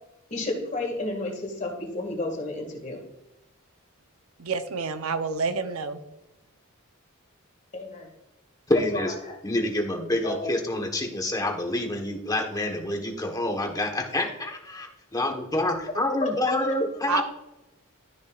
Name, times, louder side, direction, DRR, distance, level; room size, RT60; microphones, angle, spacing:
voice 1, 0.3-3.0 7.7-8.1 9.2-9.3 10.2-10.3 16.2-16.8, left 2 dB, 35° left, 2 dB, 2.0 m, -31 dB
voice 2, 4.4-6.0 17.1-17.2, right 5 dB, 80° right, 9 dB, 0.8 m, -28 dB
voice 3, 8.7-9.1 9.4-17.2, left 1 dB, 15° left, 2 dB, 1.2 m, -27 dB
13.0 x 6.6 x 2.5 m, 0.96 s
head